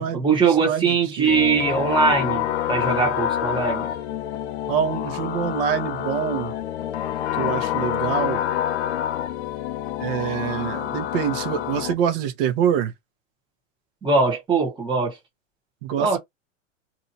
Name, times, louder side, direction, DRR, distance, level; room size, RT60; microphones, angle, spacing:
voice 1, 0.0-3.9 14.0-15.2 16.0-16.2, right 4 dB, 10° right, 1.4 m, -21 dB
voice 2, 0.6-1.5 4.7-6.5 7.4-8.4 10.0-12.9 15.8-16.2, right 9 dB, 45° right, 1.1 m, -25 dB
sound 1, 1.3-11.9, left 11 dB, 60° left, 0.6 m, -27 dB
2.8 x 2.8 x 2.8 m
hypercardioid pair, 145°, 39 cm